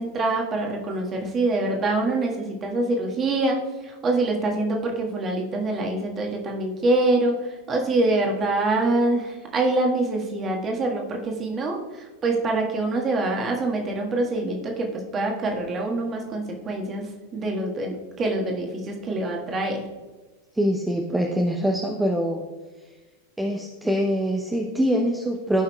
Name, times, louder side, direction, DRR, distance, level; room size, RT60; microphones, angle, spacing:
voice 1, 0.0-19.8, right 2 dB, 25° right, 1 dB, 1.5 m, -25 dB
voice 2, 20.5-22.5 23.4-25.6, equal, 5° right, 1 dB, 0.7 m, -24 dB
14.5 x 5.6 x 2.3 m, 1.3 s
figure-of-eight pair, 90°, 0 cm